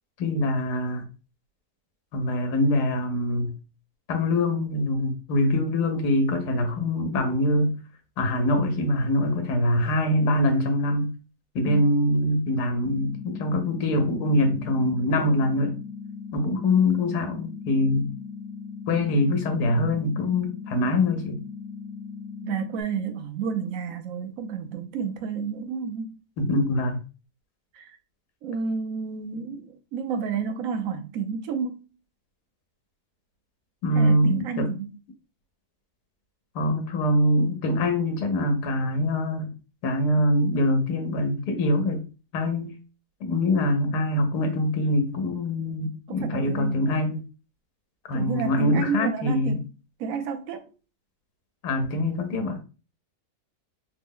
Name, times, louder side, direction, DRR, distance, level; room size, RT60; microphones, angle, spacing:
voice 1, 0.2-1.0 2.1-3.6 4.1-7.8 8.2-11.1 11.5-15.8 16.3-18.1 18.9-21.4 26.4-27.0 33.8-34.7 36.5-39.5 39.8-42.0 42.3-42.7 43.2-47.2 48.0-49.6 51.6-52.6, left 1 dB, 80° left, 1.3 m, -24 dB
sound 1, 12.8-22.8, left 5 dB, 55° left, 0.8 m, -39 dB
voice 2, 22.4-26.2 27.7-28.0 28.4-31.9 33.9-35.0 46.1-46.8 48.1-49.6 50.0-50.6, right 6 dB, 70° right, 0.9 m, -30 dB
3.3 x 2.0 x 3.6 m
omnidirectional pair, 1.7 m